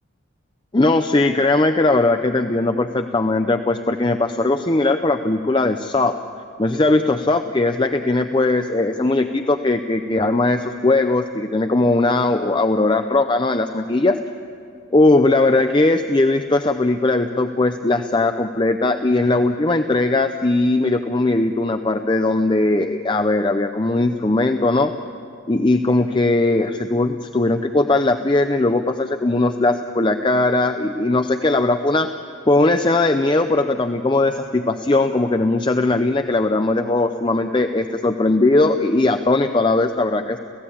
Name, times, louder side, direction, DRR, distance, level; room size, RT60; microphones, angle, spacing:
voice 1, 0.7-6.1 6.6-14.2 14.9-24.9 25.5-32.1 32.5-40.4, left 2 dB, 25° left, 8 dB, 0.5 m, -19 dB
29.0 x 16.0 x 8.6 m, 2.4 s
head